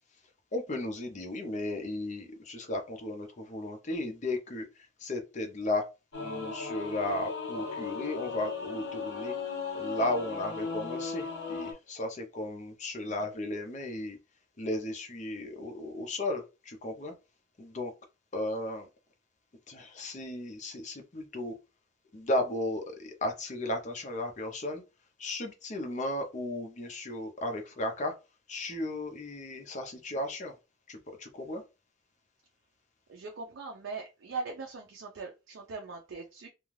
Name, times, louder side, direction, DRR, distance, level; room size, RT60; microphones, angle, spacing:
voice 1, 0.5-5.9 6.2-9.4 9.7-14.2 14.6-17.1 17.6-17.9 18.3-18.9 19.7-21.6 22.1-24.8 25.2-28.1 28.5-30.5 30.9-31.6, left 1 dB, 35° left, 0.5 m, -35 dB
Singing / Musical instrument, 6.1-11.7, left 5 dB, 60° left, 0.8 m, -36 dB
voice 2, 33.1-36.5, right 4 dB, 70° right, 0.5 m, -40 dB
2.4 x 2.2 x 3.1 m
head